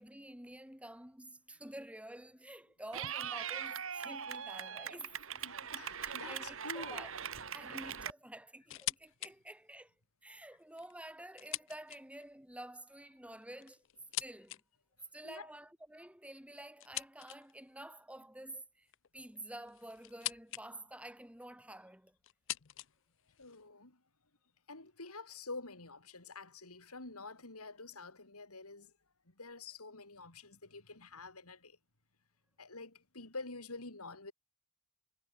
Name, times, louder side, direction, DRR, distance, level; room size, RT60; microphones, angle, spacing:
voice 1, 0.0-7.1 7.5-9.9 10.2-13.8 14.2-14.6 15.1-18.9 19.1-22.2, right 1 dB, 5° right, 2.9 m, -50 dB
Clapping / Cheering, 2.9-8.1, right 8 dB, 65° right, 2.2 m, -41 dB
voice 2, 5.4-7.1 15.2-15.5 23.4-24.0 24.7-28.9 29.3-31.8 32.6-34.3, left 3 dB, 80° left, 4.2 m, -48 dB
sound 1, 8.7-9.3 9.7-9.8 10.6-12.3 13.3-14.6 16.8-17.6 18.9-20.7 20.9-21.5 22.2-23.7, left 16 dB, 55° left, 0.6 m, -44 dB
head